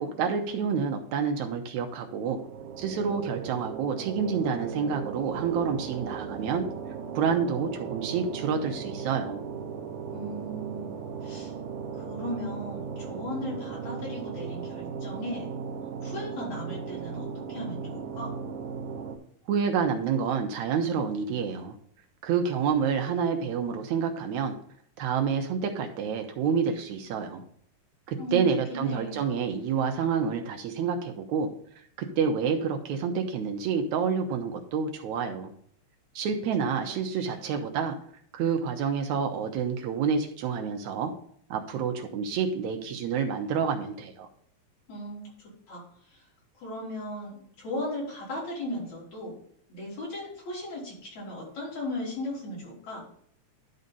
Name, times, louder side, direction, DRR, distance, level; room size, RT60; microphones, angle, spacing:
voice 1, 0.0-2.4 2.8-6.7 7.2-9.5 19.5-21.8 22.2-24.6 25.0-27.4 28.1-31.5 32.0-35.5 36.2-38.0 38.3-41.1 41.5-44.3, right 6 dB, 80° right, 4 dB, 2.1 m, -28 dB
sound 1, 2.4-19.2, right 6 dB, 60° right, 1.7 m, -37 dB
voice 2, 10.1-10.9 11.2-11.5 11.9-15.5 16.0-18.3 28.2-29.2 36.9-37.0 37.2-37.4 44.9-46.2 46.6-49.3 49.7-53.0, left 1 dB, 70° left, -5 dB, 5.1 m, -37 dB
11.0 x 4.0 x 5.3 m, 0.64 s
omnidirectional pair, 3.3 m